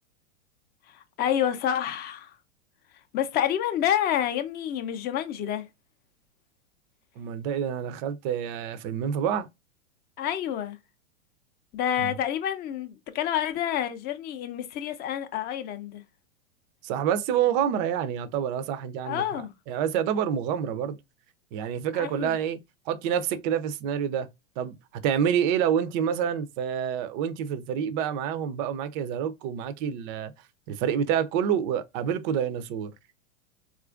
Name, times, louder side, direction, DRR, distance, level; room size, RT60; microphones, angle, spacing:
voice 1, 0.9-2.3 3.1-5.6 10.2-10.8 11.7-16.0 19.0-19.5 21.9-22.4, left 10 dB, 25° left, 0.5 m, -28 dB
voice 2, 7.2-9.5 12.0-12.1 16.8-21.0 21.5-22.6 22.9-24.3 24.6-24.8 25.0-30.3 30.7-32.9, right 8 dB, 40° right, 0.5 m, -27 dB
4.1 x 2.4 x 2.3 m
hypercardioid pair, 115°, 38 cm